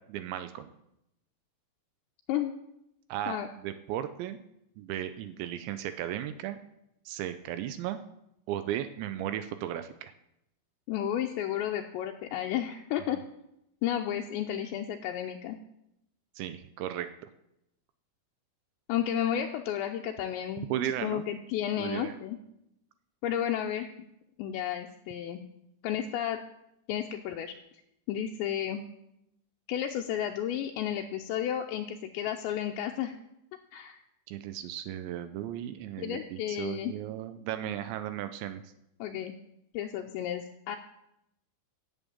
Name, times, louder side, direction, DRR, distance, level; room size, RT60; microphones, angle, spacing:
voice 1, 0.1-0.7 3.1-4.4 4.8-6.6 7.1-8.0 8.5-10.1 16.4-17.1 20.7-21.2 21.8-22.2 34.3-38.6, right 11 dB, 85° right, 10 dB, 2.8 m, -35 dB
voice 2, 10.9-13.2 13.8-15.6 18.9-20.7 21.0-22.4 23.2-23.9 24.4-25.4 25.8-26.4 26.9-27.5 28.1-28.8 29.7-33.1 33.7-34.0 36.0-36.9 39.0-39.3 39.7-40.8, left 10 dB, 85° left, 3 dB, 2.7 m, -32 dB
11.0 x 7.4 x 8.6 m, 0.82 s
omnidirectional pair, 5.6 m